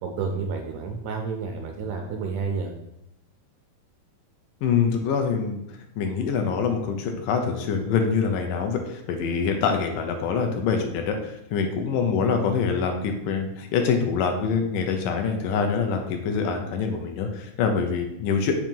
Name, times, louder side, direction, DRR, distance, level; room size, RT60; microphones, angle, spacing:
voice 1, 0.0-2.7, right 5 dB, 85° right, 2 dB, 1.6 m, -30 dB
voice 2, 4.6-5.6 6.0-18.5, left 5 dB, 80° left, 4 dB, 2.2 m, -25 dB
7.4 x 2.8 x 5.3 m, 0.83 s
omnidirectional pair, 3.9 m